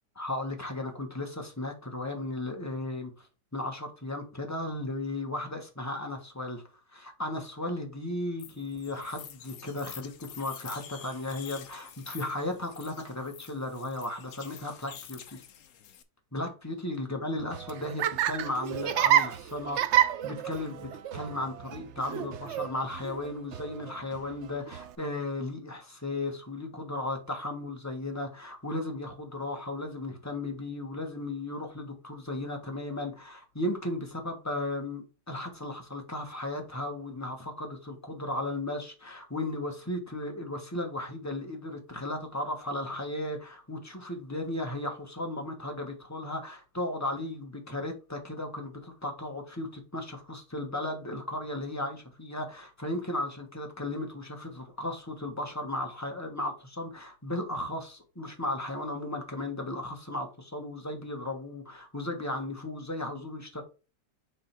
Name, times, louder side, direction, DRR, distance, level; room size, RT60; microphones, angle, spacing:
voice 1, 0.1-3.3 3.5-6.6 6.9-15.4 16.3-63.6, left 1 dB, 10° left, 1.4 m, -35 dB
sound 1, 8.4-16.0, left 9 dB, 65° left, 1.1 m, -48 dB
Laughter, 17.4-24.9, right 11 dB, 85° right, 0.6 m, -30 dB
6.7 x 3.8 x 4.6 m
omnidirectional pair, 1.9 m